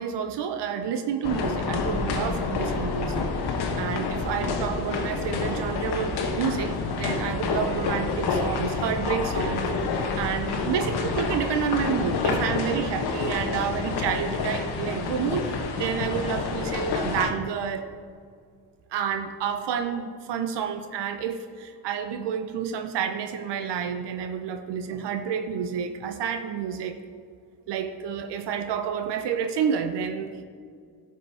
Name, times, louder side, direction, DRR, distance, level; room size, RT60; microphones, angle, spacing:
voice 1, 0.0-3.3 3.8-17.8 18.9-27.0 27.7-30.4, right 7 dB, 70° right, 8 dB, 0.8 m, -29 dB
sound 1, 1.2-17.3, left 4 dB, 60° left, 1.2 m, -28 dB
11.5 x 5.6 x 4.8 m, 2.1 s
supercardioid pair, 60°, 43 cm